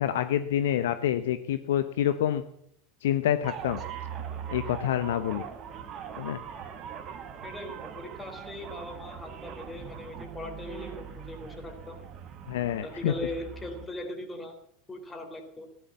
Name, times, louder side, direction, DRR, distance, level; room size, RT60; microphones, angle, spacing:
voice 1, 0.0-2.4 3.0-3.8 4.5-5.4 6.2-6.4 12.5-13.1, left 11 dB, 60° left, 11 dB, 0.9 m, -27 dB
sound 1, 3.4-13.9, right 8 dB, 35° right, 2.1 m, -41 dB
voice 2, 7.4-12.0 12.8-14.5 14.9-15.7, left 1 dB, 15° left, 6 dB, 3.7 m, -40 dB
16.5 x 11.5 x 7.2 m, 0.70 s
figure-of-eight pair, 80°, 0 cm